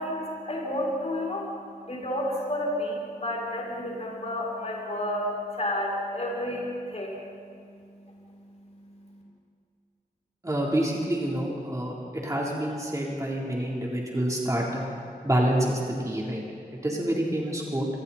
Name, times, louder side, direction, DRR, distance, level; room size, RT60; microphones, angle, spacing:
voice 1, 0.0-9.2, left 1 dB, 45° left, -4 dB, 6.8 m, -32 dB
voice 2, 10.4-11.9 12.2-14.9 15.2-16.4 16.7-17.9, right 1 dB, 20° right, -3 dB, 3.6 m, -27 dB
29.5 x 23.5 x 4.3 m, 2.4 s
wide cardioid pair, 90°, 15 cm